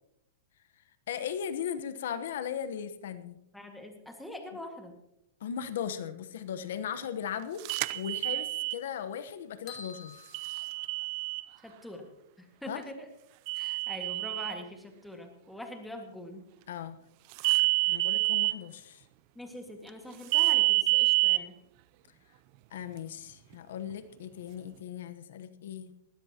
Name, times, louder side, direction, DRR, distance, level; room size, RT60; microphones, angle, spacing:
voice 1, 1.1-3.4 5.4-7.6 7.9-10.3 12.7-12.8 16.7-17.0 17.9-19.0 22.7-25.9, left 8 dB, 70° left, 10 dB, 1.0 m, -37 dB
voice 2, 3.5-4.9 11.6-12.1 12.4-13.1 13.5-16.4 19.3-21.6, left 1 dB, 5° left, 3 dB, 1.8 m, -43 dB
sound 1, 7.7-8.8 10.3-11.4 13.5-14.5 17.4-18.5 20.3-21.4, right 26 dB, 40° right, 0.5 m, -27 dB
sound 2, 9.7-11.4, left 5 dB, 30° left, 2.9 m, -49 dB
20.0 x 15.5 x 2.9 m, 0.83 s
supercardioid pair, 160°, 0 cm